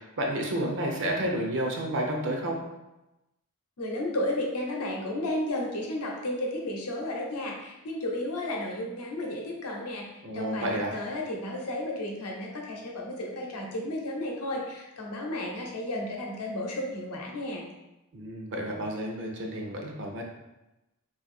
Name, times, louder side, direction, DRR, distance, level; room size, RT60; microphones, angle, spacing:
voice 1, 0.0-2.6 10.2-11.0 18.1-20.2, right 1 dB, 55° right, 1 dB, 0.6 m, -30 dB
voice 2, 3.8-17.6, left 1 dB, 80° left, 0 dB, 0.7 m, -33 dB
2.6 x 2.5 x 4.2 m, 0.97 s
head